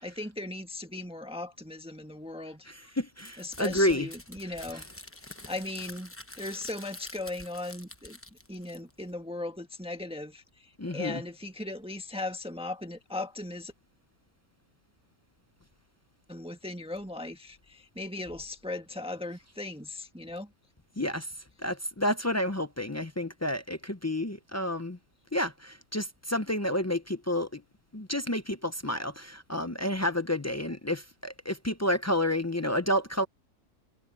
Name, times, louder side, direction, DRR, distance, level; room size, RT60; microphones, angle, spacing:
voice 1, 0.0-3.0 3.4-4.9 5.4-8.2 8.5-13.7 16.3-20.5, left 2 dB, 5° right, 1.4 m, -38 dB
voice 2, 2.7-4.1 10.8-11.2 21.0-21.3 21.6-25.0 25.3-27.6 27.9-33.2, left 1 dB, 25° left, 0.3 m, -30 dB
Crumpling crinkling, 3.2-9.1, left 2 dB, 10° left, 0.8 m, -47 dB
omnidirectional pair, 1.5 m